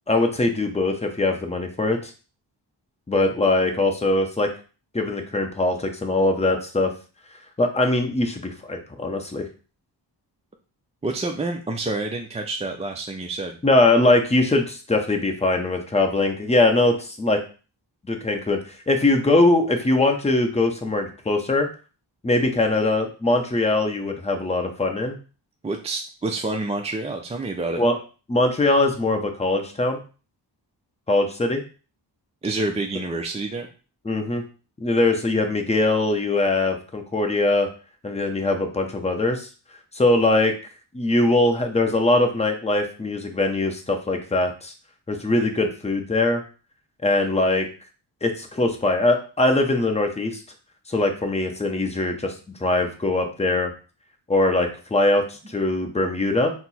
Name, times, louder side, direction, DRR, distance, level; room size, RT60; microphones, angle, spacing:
voice 1, 0.1-2.1 3.1-4.5 4.9-6.9 7.6-9.5 13.6-17.4 18.1-21.7 22.2-25.2 27.8-28.0 28.3-30.0 31.1-31.6 34.0-34.4 34.8-37.7 38.0-39.5 39.9-40.6 40.9-44.7 45.1-46.4 47.0-47.7 48.2-50.4 50.9-52.3 52.6-53.7 54.3-56.5, left 2 dB, 15° left, 4 dB, 0.7 m, -21 dB
voice 2, 11.0-13.6 25.6-27.8 32.4-33.7, right 2 dB, 15° right, 3 dB, 0.3 m, -28 dB
4.4 x 2.0 x 4.0 m, 0.35 s
wide cardioid pair, 100°, 43 cm